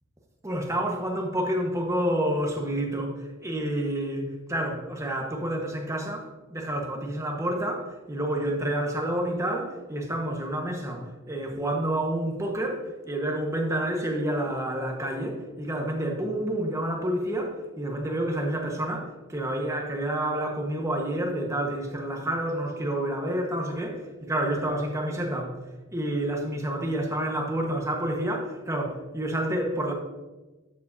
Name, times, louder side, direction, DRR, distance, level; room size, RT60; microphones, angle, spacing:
voice 1, 0.4-25.6 25.9-29.9, right 1 dB, 15° right, 1.2 m, -29 dB
12.5 x 7.5 x 2.7 m
head